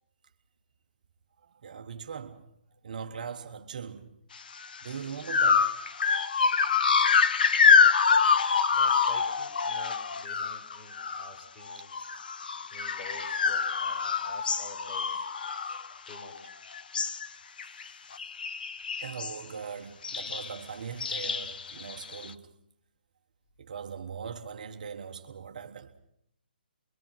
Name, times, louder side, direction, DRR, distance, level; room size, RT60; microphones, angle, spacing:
voice 1, 1.4-2.5 2.8-4.2 4.8-5.8 11.7-11.8 15.7-15.8 17.3-17.4 19.0-22.5 23.6-25.9, right 6 dB, 50° right, 1.4 m, -40 dB
sound 1, 4.6-4.8 5.3-11.4 11.7-16.5 16.7-17.3 17.6-17.9 18.1-19.4 20.0-20.5 21.0-22.3, left 5 dB, 60° left, 1.0 m, -26 dB
voice 2, 8.7-11.9 12.7-15.3 16.1-16.5, left 1 dB, 20° left, 3.8 m, -49 dB
26.0 x 23.5 x 5.9 m
hypercardioid pair, 160°, 5 cm